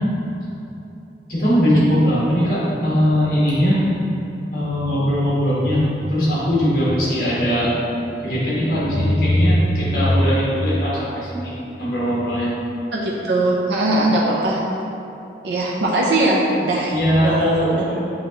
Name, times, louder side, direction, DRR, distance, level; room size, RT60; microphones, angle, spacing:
voice 1, 1.3-3.8 4.5-7.7 8.2-11.5 11.8-12.5 16.9-17.3, equal, 55° left, -8 dB, 1.5 m, -19 dB
voice 2, 12.9-14.6 15.4-16.9 17.2-18.0, right 1 dB, 70° right, -4 dB, 0.5 m, -20 dB
6.3 x 2.9 x 2.9 m, 2.9 s
head